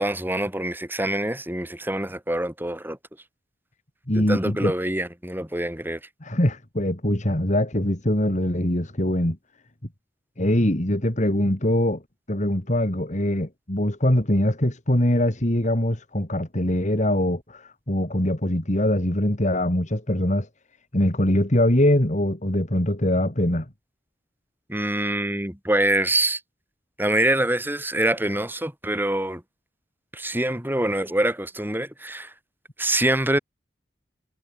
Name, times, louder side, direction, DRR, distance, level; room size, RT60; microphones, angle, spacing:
voice 1, 0.0-3.0 4.1-6.0 24.7-26.4 27.0-29.4 30.1-32.3 32.8-33.4, right 1 dB, 10° right, 5.0 m, -25 dB
voice 2, 4.1-4.7 6.2-9.4 10.4-12.0 12.3-20.5 20.9-23.7, left 1 dB, 45° left, 3.1 m, -22 dB
head